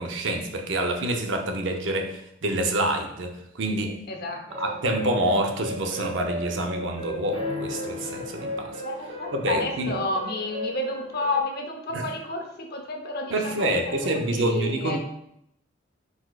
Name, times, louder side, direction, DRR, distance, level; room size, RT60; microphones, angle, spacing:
voice 1, 0.0-4.0 4.6-8.7 9.3-9.9 11.9-12.1 13.3-15.0, right 1 dB, 70° right, 4 dB, 0.6 m, -27 dB
voice 2, 3.8-4.8 8.8-15.0, left 2 dB, 55° left, 3 dB, 0.7 m, -31 dB
sound 1, 4.5-11.4, equal, 30° right, 0.9 m, -35 dB
4.7 x 4.1 x 2.4 m, 0.76 s
head